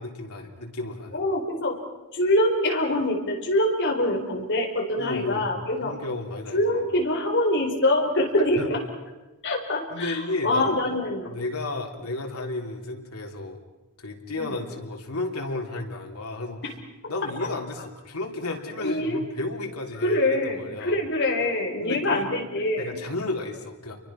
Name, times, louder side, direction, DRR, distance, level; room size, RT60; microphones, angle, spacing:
voice 1, 0.0-1.2 5.0-5.5 5.8-6.6 8.4-8.7 9.9-10.8 11.3-13.6 14.0-16.6 17.1-21.0 21.8-22.3 22.8-24.0, left 2 dB, 90° left, 2 dB, 3.6 m, -32 dB
voice 2, 1.1-1.8 2.1-6.0 6.5-8.8 9.4-11.3 14.4-14.5 18.8-19.2 20.0-23.0, left 1 dB, 55° left, 2 dB, 4.8 m, -24 dB
29.0 x 23.5 x 6.0 m, 1.1 s
head